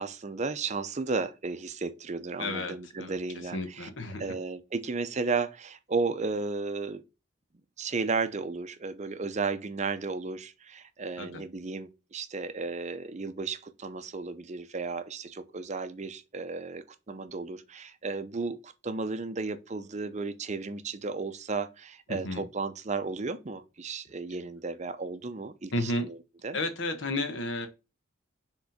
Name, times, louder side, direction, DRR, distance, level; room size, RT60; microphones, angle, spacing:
voice 1, 0.0-3.9 4.2-7.0 7.8-26.2 26.4-26.6, right 4 dB, 35° right, 0.6 m, -34 dB
voice 2, 2.4-3.1 3.5-4.4 11.2-11.4 22.1-22.4 25.7-26.1 26.5-27.7, left 2 dB, 70° left, 1.1 m, -32 dB
5.1 x 3.8 x 5.0 m
head